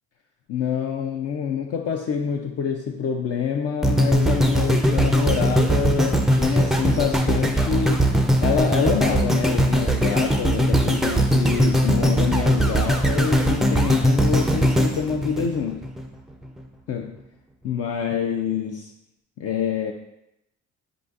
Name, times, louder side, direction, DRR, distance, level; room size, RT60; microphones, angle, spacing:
voice 1, 0.5-8.0 8.4-15.9 16.9-17.2 17.6-18.9 19.4-19.9, left 7 dB, 55° left, 2 dB, 0.5 m, -26 dB
sound 1, 3.8-16.0 16.6-16.7, equal, ahead, 0.4 m, -20 dB
4.6 x 3.8 x 2.5 m, 0.83 s
cardioid pair, 90°, 30 cm